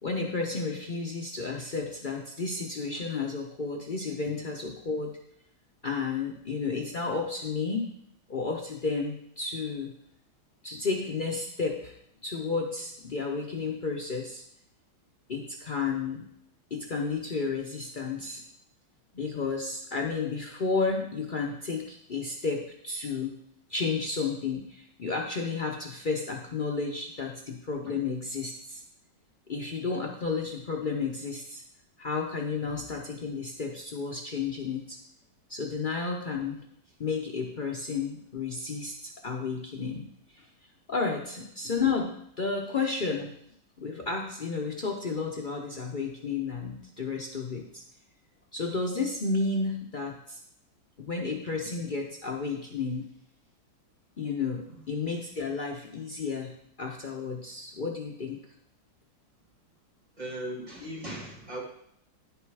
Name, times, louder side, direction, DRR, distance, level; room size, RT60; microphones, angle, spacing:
voice 1, 0.0-5.2 5.8-7.9 8.3-9.9 10.6-12.0 12.2-14.4 15.3-16.3 16.7-18.4 19.1-23.3 23.7-28.8 29.5-31.6 32.0-35.0 35.5-36.6 37.0-40.0 40.3-40.5 40.9-43.3 43.8-47.8 48.5-50.4 51.0-53.1 54.2-56.5 56.8-58.4, left 4 dB, 75° left, 0 dB, 0.4 m, -32 dB
voice 2, 60.2-61.6, right 1 dB, 20° right, -5 dB, 2.8 m, -38 dB
10.5 x 6.7 x 4.8 m, 0.72 s
omnidirectional pair, 2.2 m